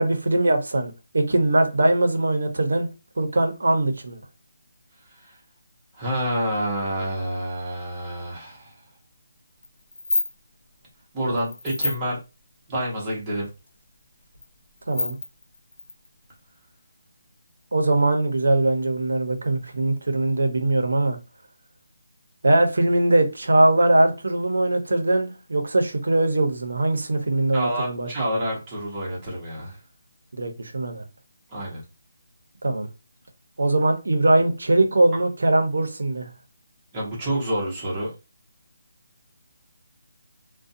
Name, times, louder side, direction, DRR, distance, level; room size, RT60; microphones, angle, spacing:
voice 1, 0.0-2.9 3.2-4.2 14.9-15.2 17.7-21.2 22.4-28.1 30.3-31.0 32.6-32.9 33.6-36.3, right 2 dB, 80° right, 0.7 m, -21 dB
voice 2, 5.9-8.7 11.1-12.2 12.7-13.5 27.5-29.8 31.5-31.8 36.9-38.1, right 1 dB, 15° right, 0.9 m, -28 dB
sound 1, 9.6-9.7 9.9-10.3 11.4-12.0 13.1-13.2 13.4-13.5 14.3-14.4 14.8-16.3, left 3 dB, 75° left, 0.8 m, -27 dB
2.5 x 2.2 x 2.6 m
hypercardioid pair, 175°, 0 cm